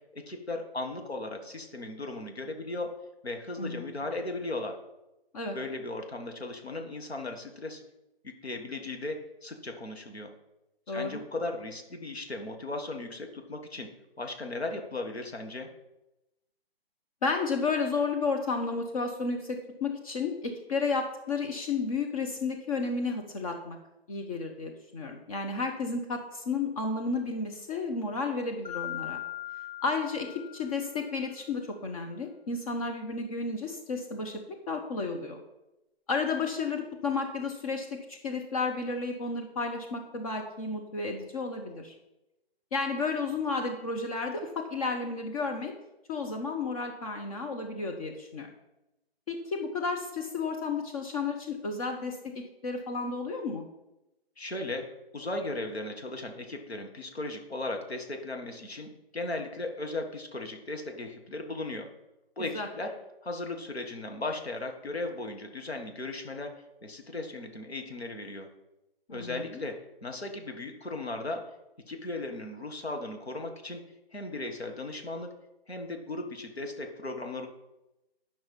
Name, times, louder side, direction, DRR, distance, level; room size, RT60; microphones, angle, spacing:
voice 1, 0.1-2.9 3.2-4.7 5.5-7.8 8.2-10.3 10.9-13.9 14.2-15.7 54.4-54.9 55.1-61.9 62.4-62.9 63.2-66.5 66.8-68.5 69.1-69.8 70.0-71.4 71.9-73.8 74.1-75.3 75.7-77.5, left 2 dB, 85° left, 3 dB, 1.6 m, -37 dB
voice 2, 3.6-3.9 5.3-5.6 10.9-11.1 17.2-23.8 24.1-29.2 29.8-30.3 30.5-34.4 34.7-35.4 36.1-41.9 42.7-45.7 46.1-48.5 49.3-52.2 52.6-53.6 62.4-62.7 69.1-69.4, left 4 dB, 35° left, 3 dB, 0.9 m, -32 dB
Mallet percussion, 28.6-31.2, left 14 dB, 55° left, 3.3 m, -40 dB
11.0 x 5.6 x 5.3 m, 0.95 s
figure-of-eight pair, 135°, 31 cm